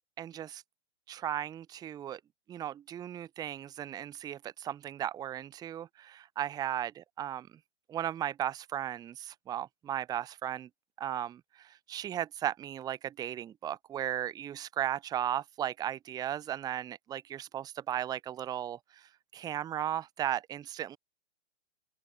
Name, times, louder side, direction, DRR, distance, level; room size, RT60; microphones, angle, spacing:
voice 1, 0.2-0.6 1.1-2.2 2.5-7.5 7.9-10.7 11.0-21.0, right 11 dB, 10° right, 0.7 m, -36 dB
open air
hypercardioid pair, 130°, 35 cm